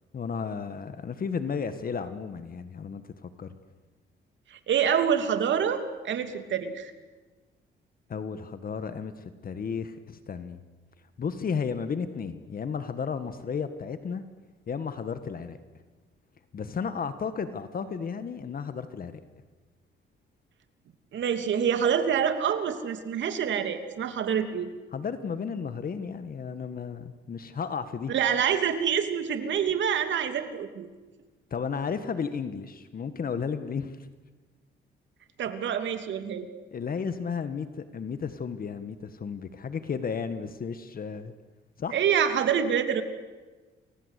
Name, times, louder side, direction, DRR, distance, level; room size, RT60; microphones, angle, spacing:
voice 1, 0.1-3.5 8.1-10.6 11.2-14.2 14.7-15.6 16.5-19.2 24.9-28.1 31.5-34.0 36.7-41.3 41.8-42.0, left 6 dB, 45° left, 10 dB, 1.8 m, -33 dB
voice 2, 4.5-6.9 21.1-24.7 28.1-30.9 35.4-36.4 41.9-43.0, right 8 dB, 70° right, 8 dB, 2.9 m, -26 dB
29.5 x 23.0 x 8.4 m, 1.3 s
cardioid pair, 90°, 20 cm